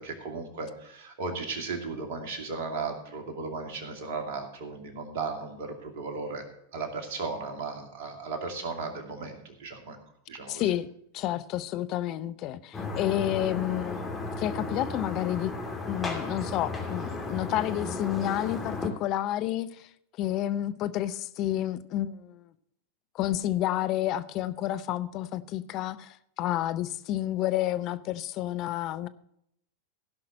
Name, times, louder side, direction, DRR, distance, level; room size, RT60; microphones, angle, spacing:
voice 1, 0.0-6.4 6.7-10.0 10.3-10.6, right 4 dB, 55° right, 3 dB, 2.5 m, -36 dB
voice 2, 10.5-10.9 11.1-15.5 15.9-19.9 20.2-22.4 23.1-29.1, left 13 dB, 40° left, 13 dB, 0.6 m, -30 dB
sound 1, 12.7-18.9, left 3 dB, 10° left, 2.8 m, -34 dB
16.0 x 5.8 x 6.3 m, 0.74 s
figure-of-eight pair, 90°, 0 cm